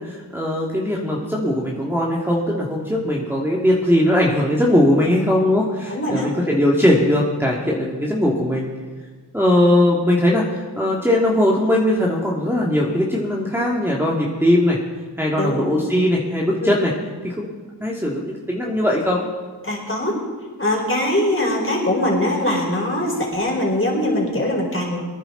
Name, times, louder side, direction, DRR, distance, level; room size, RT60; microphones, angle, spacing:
voice 1, 0.0-8.7 9.3-14.8 15.2-16.9 17.2-17.5 17.8-19.2, left 1 dB, 5° right, -4 dB, 2.1 m, -19 dB
voice 2, 5.9-6.6 15.3-15.6 16.6-16.7 19.6-20.1 20.6-25.0, left 1 dB, 30° left, -2 dB, 4.3 m, -22 dB
22.5 x 10.0 x 3.9 m, 1.4 s
wide cardioid pair, 45°, 44 cm